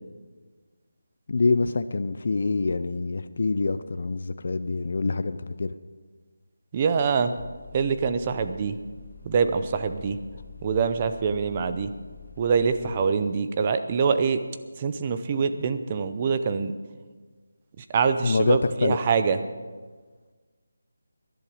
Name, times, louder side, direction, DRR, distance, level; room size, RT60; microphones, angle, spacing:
voice 1, 1.3-5.7 18.2-19.0, left 3 dB, 45° left, 11 dB, 0.5 m, -25 dB
voice 2, 6.7-7.3 7.7-8.8 9.2-10.2 10.6-11.9 12.4-14.4 14.8-16.7 17.8-19.4, right 5 dB, 20° right, 10 dB, 0.6 m, -24 dB
sound 1, 7.4-12.9, left 5 dB, 75° left, 2.3 m, -46 dB
19.5 x 11.0 x 5.0 m, 1.4 s
figure-of-eight pair, 175°, 0 cm